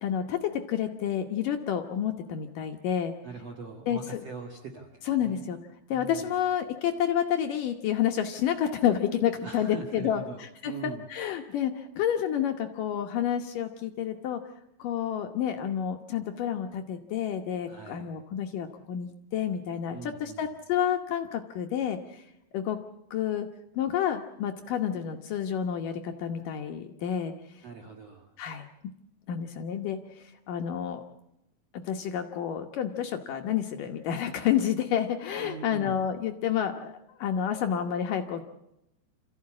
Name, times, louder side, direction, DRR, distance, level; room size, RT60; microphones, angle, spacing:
voice 1, 0.0-3.1 3.9-4.0 5.1-5.6 5.9-14.4 14.8-22.2 22.5-22.8 23.1-23.5 23.8-27.3 28.4-28.7 29.3-31.0 31.7-38.5, left 9 dB, 65° left, 5 dB, 2.3 m, -29 dB
voice 2, 3.2-5.4 5.9-6.3 9.4-11.1 17.7-18.1 19.9-20.5 27.6-28.3 35.4-36.1, right 4 dB, 55° right, 2 dB, 2.0 m, -42 dB
27.5 x 15.0 x 8.6 m, 0.86 s
omnidirectional pair, 4.8 m